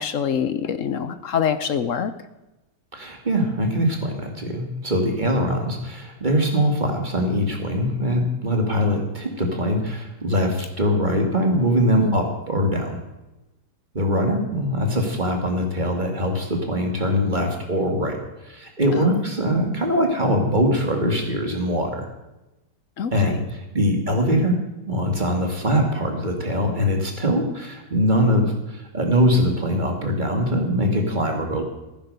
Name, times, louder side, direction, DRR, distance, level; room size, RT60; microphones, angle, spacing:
voice 1, 0.0-2.1 12.0-12.2 18.9-19.1 23.0-23.3, left 7 dB, 55° left, 12 dB, 1.0 m, -25 dB
voice 2, 2.9-13.0 13.9-18.2 18.4-22.1 23.1-24.5 24.9-31.6, equal, 25° right, 2 dB, 2.5 m, -22 dB
14.5 x 10.0 x 6.7 m, 0.99 s
omnidirectional pair, 1.8 m